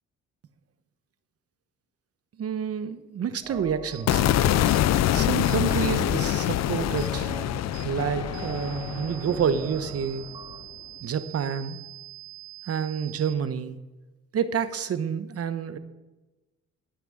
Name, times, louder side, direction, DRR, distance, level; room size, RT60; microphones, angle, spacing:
voice 1, 2.4-4.2 5.1-7.3 7.8-10.3 11.0-11.8 12.7-13.8 14.3-15.8, right 7 dB, 50° right, 11 dB, 1.0 m, -28 dB
sound 1, 3.4-10.7, right 4 dB, 15° right, 0.5 m, -40 dB
sound 2, 3.9-4.1 4.7-4.8 5.4-5.6 6.2-6.4 7.0-7.1 7.7-7.9 8.3-13.3, right 17 dB, 90° right, 1.2 m, -44 dB
sound 3, 4.1-10.3, left 12 dB, 60° left, 0.5 m, -25 dB
12.5 x 6.0 x 8.7 m, 1.1 s
cardioid pair, 90°, 30 cm